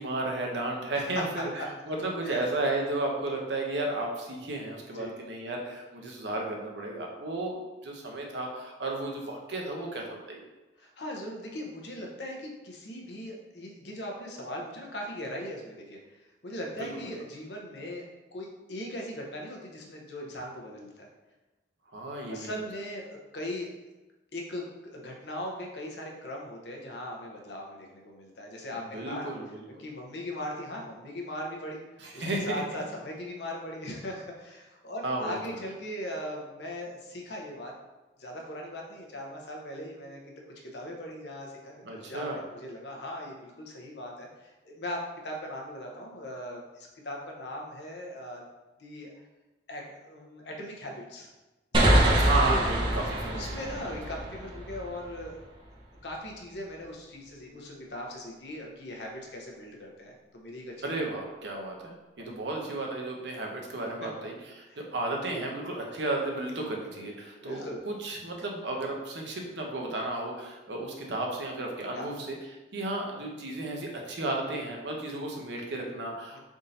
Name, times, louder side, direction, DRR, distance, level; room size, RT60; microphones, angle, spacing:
voice 1, 0.0-10.4 16.8-17.1 21.9-22.5 28.7-29.6 32.0-32.6 35.0-35.4 41.8-42.4 52.0-54.0 60.8-72.4 72.7-76.4, right 2 dB, 75° right, 0 dB, 0.7 m, -33 dB
voice 2, 10.8-16.0 16.4-21.1 22.3-23.7 24.3-29.3 29.8-37.7 38.2-40.2 40.6-48.4 48.8-49.1 49.7-51.3 51.7-51.9 52.5-52.6 53.3-55.4 56.0-60.9 64.0-64.3 64.7-64.8 65.3-65.5 67.4-67.8 71.9-72.1 76.3-76.4, left 1 dB, 75° left, 0 dB, 0.7 m, -39 dB
sound 1, 51.7-55.2, right 1 dB, 25° right, 0.6 m, -25 dB
3.6 x 2.6 x 4.0 m, 1.1 s
head